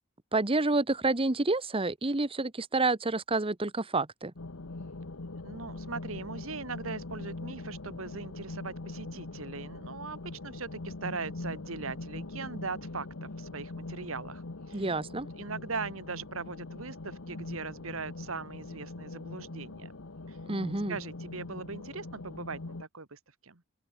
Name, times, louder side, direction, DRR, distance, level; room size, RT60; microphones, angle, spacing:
voice 1, 0.3-4.3 14.7-15.3 20.5-21.0, right 2 dB, 25° right, 1.2 m, -29 dB
sound 1, 4.4-22.8, left 2 dB, 75° left, 1.2 m, -42 dB
voice 2, 5.4-14.9 15.4-19.9 20.3-20.4 20.9-23.6, right 4 dB, 70° right, 1.9 m, -40 dB
open air
head